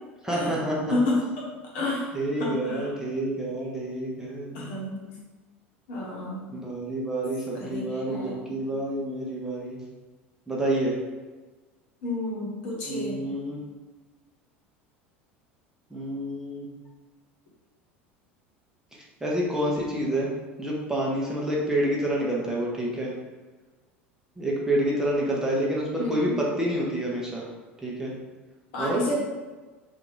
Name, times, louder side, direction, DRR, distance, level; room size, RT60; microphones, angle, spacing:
voice 1, 0.2-0.9 2.1-4.7 6.5-9.8 10.5-11.0 12.9-13.6 15.9-16.7 18.9-20.3 20.6-23.1 24.4-27.5 27.8-28.1 28.8-29.0, right 1 dB, 10° right, -4 dB, 0.8 m, -28 dB
voice 2, 0.9-1.5 1.7-2.1 2.4-3.0 4.5-5.0 5.9-6.5 7.5-8.7 12.0-13.2 26.0-26.4 28.7-29.2, left 2 dB, 60° left, -4 dB, 1.0 m, -30 dB
2.8 x 2.6 x 3.8 m, 1.3 s
figure-of-eight pair, 75°, 7 cm